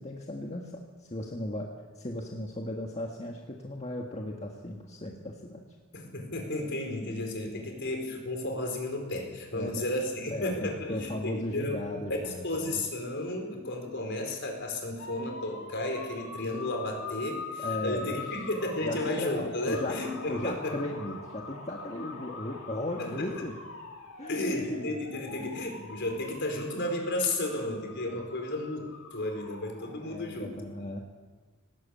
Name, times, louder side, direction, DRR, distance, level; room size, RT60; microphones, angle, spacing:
voice 1, 0.0-5.6 7.5-7.7 9.5-9.9 10.3-12.8 17.6-18.5 18.8-23.6 24.2-25.1 25.4-25.6 28.1-28.2 29.9-31.0, left 1 dB, 30° left, 0 dB, 1.7 m, -37 dB
voice 2, 5.9-11.8 12.2-20.8 23.0-23.3 24.3-30.5, left 1 dB, 55° left, 3 dB, 4.8 m, -33 dB
sound 1, 15.0-30.5, left 4 dB, 70° left, 3.8 m, -44 dB
19.0 x 18.5 x 8.6 m, 1.4 s
head